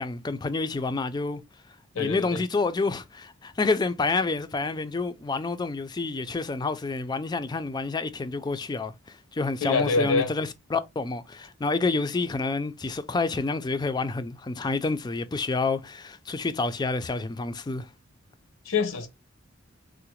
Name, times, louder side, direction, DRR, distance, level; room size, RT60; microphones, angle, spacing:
voice 1, 0.0-1.4 2.0-17.9, left 3 dB, 20° left, 0.3 m, -28 dB
voice 2, 1.9-2.4 9.6-10.3 18.6-19.1, left 4 dB, 90° left, 0.8 m, -25 dB
3.7 x 2.1 x 2.9 m
head